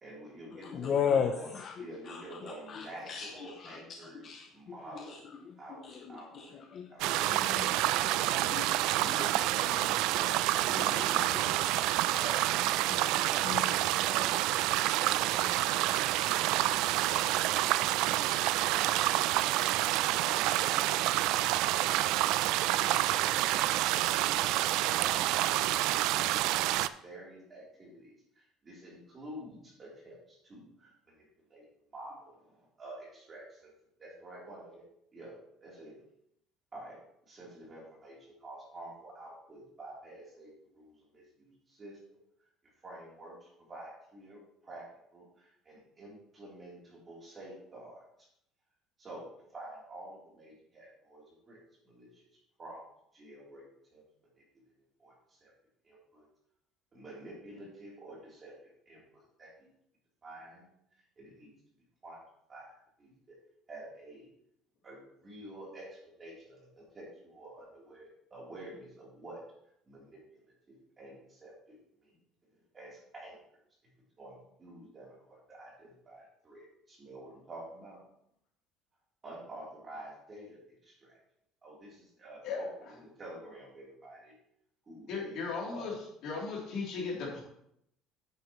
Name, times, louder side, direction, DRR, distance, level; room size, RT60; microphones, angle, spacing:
voice 1, 0.0-4.3 4.5-5.3 5.6-6.6 8.8-11.3 12.2-12.4 12.7-14.5 15.0-16.0 16.5-19.5 24.4-24.5 24.8-26.7 27.0-31.3 31.5-31.6 31.9-33.7 34.0-34.8 35.1-35.9 36.7-37.0 37.3-42.0 42.8-44.9 45.1-48.0 49.0-49.3 49.5-52.2 52.6-52.8 53.1-53.6 53.9-54.0 55.0-55.5 55.8-56.3 56.9-59.7 60.2-60.7 61.2-61.5 62.0-62.2 62.5-63.4 63.7-64.3 64.8-69.4 69.9-70.4 70.7-72.1 72.5-73.4 74.2-78.0 79.2-81.2 81.6-84.4 84.9-85.9, right 1 dB, 20° right, -5 dB, 3.3 m, -49 dB
voice 2, 0.7-1.7 2.1-2.2 2.7-3.8 4.1-4.5 5.0-5.2 5.4-5.5 5.8-6.0 6.3-7.7 8.2-9.9 10.7-11.8 12.9-13.1 13.5-13.7, left 7 dB, 35° left, 6 dB, 0.6 m, -36 dB
sound 1, 7.0-26.9, right 15 dB, 65° right, 0.3 m, -28 dB
voice 3, 85.1-85.9 86.2-87.4, left 4 dB, 50° left, -3 dB, 3.1 m, -36 dB
9.4 x 8.8 x 3.1 m, 0.75 s
cardioid pair, 175°, 0 cm